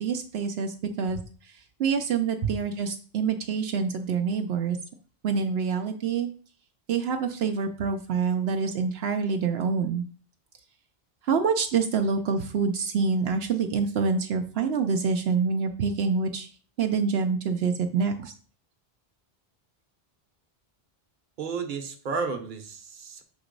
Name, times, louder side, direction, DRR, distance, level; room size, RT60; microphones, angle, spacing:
voice 1, 0.0-1.2 1.8-4.8 5.2-6.3 6.9-10.0 11.3-16.5 16.8-18.3, right 5 dB, 80° right, 0.9 m, -26 dB
voice 2, 21.4-23.2, right 5 dB, 55° right, 1.0 m, -32 dB
7.1 x 2.9 x 5.2 m
omnidirectional pair, 1.0 m